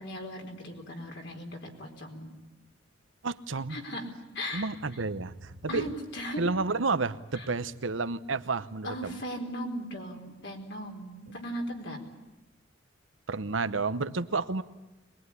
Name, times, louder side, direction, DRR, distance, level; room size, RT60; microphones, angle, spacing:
voice 1, 0.0-2.4 3.7-4.0 4.3-4.7 5.7-6.4 7.4-7.5 8.8-12.0, equal, 65° left, 1 dB, 4.2 m, -38 dB
voice 2, 3.2-3.8 4.5-5.9 6.4-9.2 13.3-14.6, right 3 dB, 85° right, 12 dB, 0.9 m, -31 dB
22.5 x 21.5 x 9.7 m, 1.1 s
head